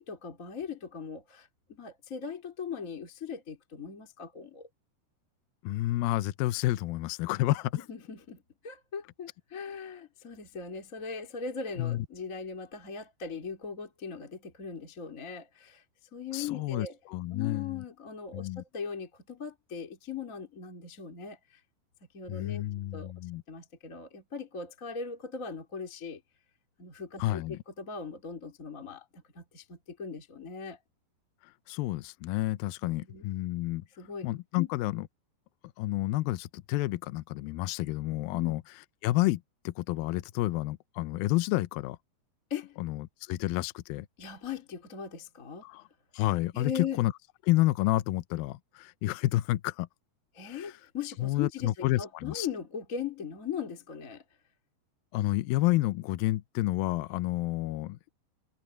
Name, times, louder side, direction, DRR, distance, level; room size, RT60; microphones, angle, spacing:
voice 1, 0.0-4.7 7.9-15.8 16.1-17.0 17.3-21.6 22.1-22.6 22.9-23.1 23.5-26.2 26.8-30.8 32.8-33.2 34.0-34.3 34.6-34.7 38.3-38.5 42.5-42.8 44.2-45.6 46.5-47.0 50.3-54.2, left 6 dB, 20° left, 2.7 m, -39 dB
voice 2, 5.6-7.7 11.8-12.1 16.3-17.7 18.3-18.6 22.3-23.4 27.2-27.6 31.7-33.8 34.2-35.0 35.8-38.6 39.0-39.4 39.7-42.0 42.8-44.1 45.6-45.8 46.1-46.7 47.0-47.1 47.5-49.9 51.2-52.5 55.1-58.0, left 17 dB, 90° left, 2.1 m, -30 dB
omnidirectional pair, 5.1 m